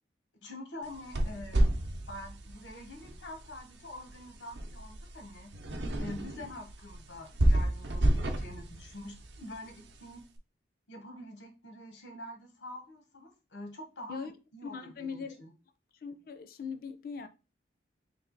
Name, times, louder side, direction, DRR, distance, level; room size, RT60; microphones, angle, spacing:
voice 1, 0.4-1.7 2.1-5.5 6.0-10.2 10.9-15.5, left 1 dB, 90° left, 1.0 m, -46 dB
sound 1, 0.8-10.2, right 1 dB, 85° right, 0.7 m, -32 dB
voice 2, 14.6-15.4 16.0-17.3, left 5 dB, 50° left, 0.4 m, -40 dB
3.3 x 2.8 x 3.8 m
head